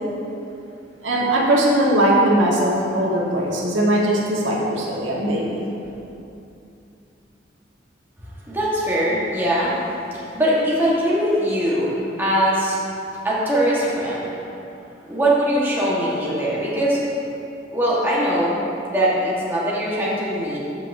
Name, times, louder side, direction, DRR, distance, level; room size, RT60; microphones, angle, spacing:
voice 1, 1.0-5.7, right 1 dB, 85° right, -4 dB, 1.4 m, -20 dB
voice 2, 8.5-9.7 10.1-12.8 13.2-14.3 15.1-17.0 17.7-18.6 18.9-20.6, equal, 10° right, -7 dB, 1.3 m, -21 dB
14.0 x 5.4 x 2.7 m, 2.8 s
head